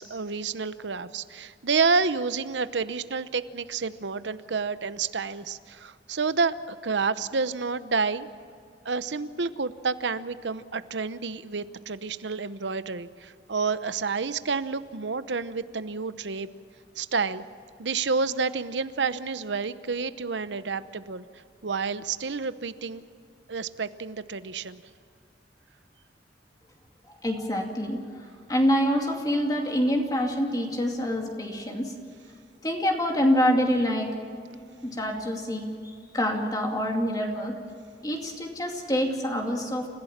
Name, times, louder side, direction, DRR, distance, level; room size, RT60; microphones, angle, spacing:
voice 1, 0.0-8.3 8.8-16.5 17.0-17.4 17.8-21.2 21.6-23.0 23.5-24.8, right 4 dB, 85° right, 13 dB, 0.9 m, -29 dB
voice 2, 27.2-28.0 28.5-31.9 32.6-34.1 34.8-37.6 38.0-39.9, equal, 20° left, 1 dB, 2.4 m, -26 dB
29.0 x 16.0 x 7.4 m, 2.3 s
head